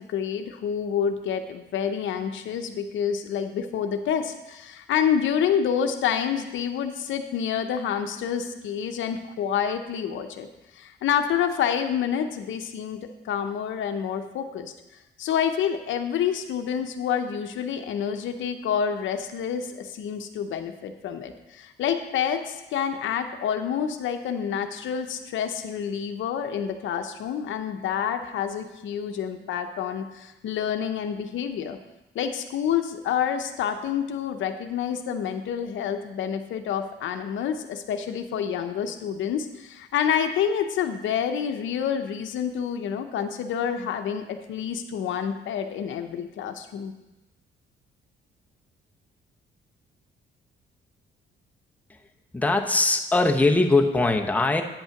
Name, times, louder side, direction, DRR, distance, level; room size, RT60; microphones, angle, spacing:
voice 1, 0.0-10.5 10.7-14.7 15.2-31.8 32.1-46.9, left 8 dB, 75° left, 7 dB, 0.7 m, -28 dB
voice 2, 52.3-54.6, left 2 dB, 5° left, 3 dB, 0.8 m, -21 dB
9.1 x 5.5 x 5.8 m, 1.0 s
cardioid pair, 90°, 20 cm